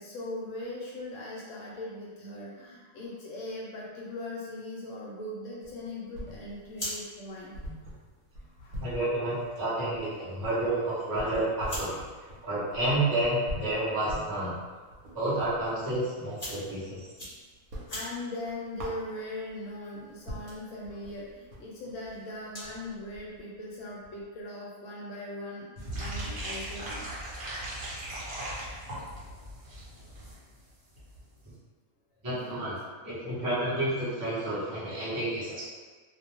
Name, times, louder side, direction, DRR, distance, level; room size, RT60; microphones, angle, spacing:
voice 1, 0.0-7.6 8.6-8.9 17.9-27.1 32.2-32.7, left 1 dB, 70° left, -5 dB, 0.9 m, -40 dB
sound 1, 5.6-6.8 7.1-7.2 7.5-16.1 16.5-17.3 17.6-19.6 20.0-20.1 20.3-24.4, equal, 80° right, 1.1 m, -43 dB
sound 2, 6.4-22.9, left 1 dB, 30° left, 1.0 m, -47 dB
voice 2, 8.8-12.0 12.4-14.6 15.1-17.0 32.2-32.7 33.0-35.6, right 1 dB, 30° right, -10 dB, 0.4 m, -30 dB
sound 3, 25.8-30.3 30.6-30.7 31.0-31.2 31.4-31.5, right 1 dB, 50° right, 0.9 m, -38 dB
2.5 x 2.0 x 2.9 m, 1.4 s
omnidirectional pair, 1.5 m